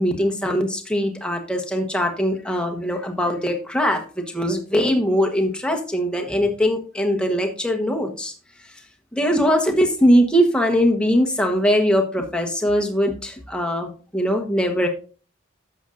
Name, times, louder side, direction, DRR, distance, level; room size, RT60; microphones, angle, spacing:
voice 1, 0.0-8.3 9.1-14.9, equal, 5° left, 2 dB, 1.1 m, -21 dB
11.0 x 7.5 x 2.5 m, 0.38 s
head